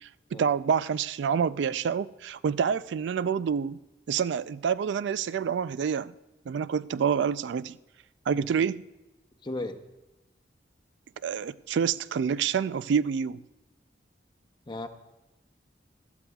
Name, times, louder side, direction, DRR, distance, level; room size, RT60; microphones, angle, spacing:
voice 1, 0.0-3.8 4.1-6.1 6.5-7.8 8.3-8.8 11.2-13.4, right 7 dB, 80° right, 0.3 m, -27 dB
voice 2, 9.4-9.8 14.7-14.9, left 2 dB, 25° left, 0.8 m, -35 dB
20.0 x 13.5 x 2.3 m
head